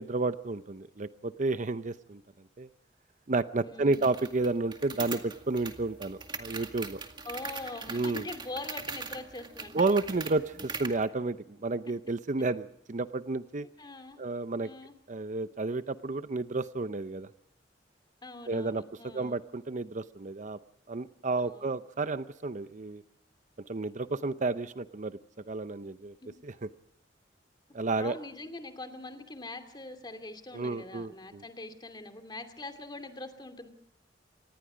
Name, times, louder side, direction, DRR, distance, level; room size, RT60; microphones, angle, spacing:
voice 1, 0.0-2.2 2.6-2.7 3.3-7.0 7.9-8.2 9.7-13.7 14.2-14.7 15.1-17.3 18.5-18.8 19.1-20.6 20.9-23.0 23.7-25.2 25.5-26.1 26.4-26.7 27.7-28.2 30.5-31.4, right 3 dB, 45° right, 13 dB, 0.7 m, -31 dB
voice 2, 3.6-4.0 7.2-10.0 13.8-14.2 14.6-14.9 18.2-19.4 21.4-21.7 26.2-26.3 28.0-33.7, left 2 dB, 25° left, 7 dB, 2.6 m, -43 dB
sound 1, 3.9-11.0, right 4 dB, 25° right, 2.1 m, -41 dB
26.0 x 20.0 x 5.0 m, 0.77 s
head